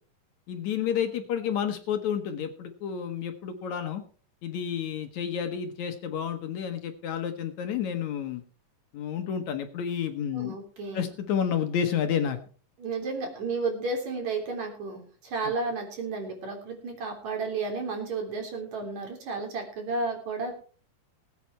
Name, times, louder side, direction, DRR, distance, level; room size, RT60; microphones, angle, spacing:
voice 1, 0.5-4.0 4.4-8.4 8.9-10.6 10.9-12.4, left 8 dB, 65° left, 7 dB, 2.2 m, -30 dB
voice 2, 10.3-11.1 12.8-20.5, right 3 dB, 55° right, 2 dB, 4.6 m, -32 dB
19.5 x 8.5 x 4.4 m, 0.41 s
omnidirectional pair, 3.8 m